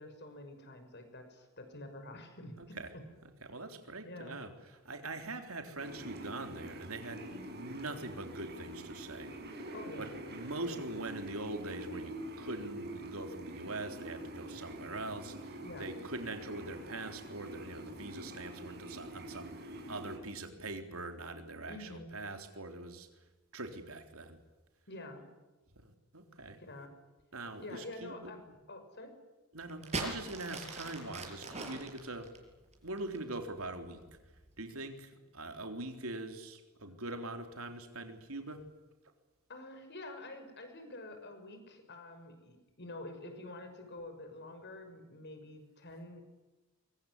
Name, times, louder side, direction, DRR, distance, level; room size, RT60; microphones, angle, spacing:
voice 1, 0.0-3.0 4.0-4.4 7.3-7.5 9.7-10.2 15.6-15.9 21.7-22.1 24.9-25.3 26.6-26.9 27.6-29.1 36.8-36.9 39.5-46.2, left 2 dB, 50° left, 7 dB, 6.2 m, -48 dB
voice 2, 2.6-2.9 3.4-4.5 4.8-7.3 7.6-9.3 10.0-23.1 23.5-24.4 25.8-26.6 27.3-28.3 29.5-32.3 32.8-34.0 34.6-38.7, right 2 dB, 70° right, 6 dB, 3.7 m, -43 dB
sound 1, 5.8-20.2, right 1 dB, 45° right, 5.7 m, -45 dB
sound 2, 29.6-33.3 34.1-34.5, right 3 dB, 30° right, 5.9 m, -40 dB
24.5 x 24.0 x 9.8 m, 1.1 s
head